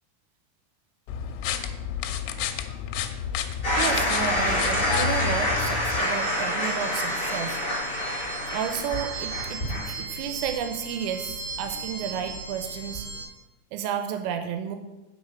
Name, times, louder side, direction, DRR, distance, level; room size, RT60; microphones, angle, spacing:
sound 1, 1.1-6.0, left 8 dB, 85° left, 3.3 m, -30 dB
sound 2, 3.6-13.2, equal, 15° left, 2.8 m, -28 dB
voice 1, 3.8-7.6 8.5-13.1 13.7-14.8, right 8 dB, 90° right, 7 dB, 3.3 m, -32 dB
8.3 x 5.6 x 7.9 m, 1.0 s
omnidirectional pair, 5.8 m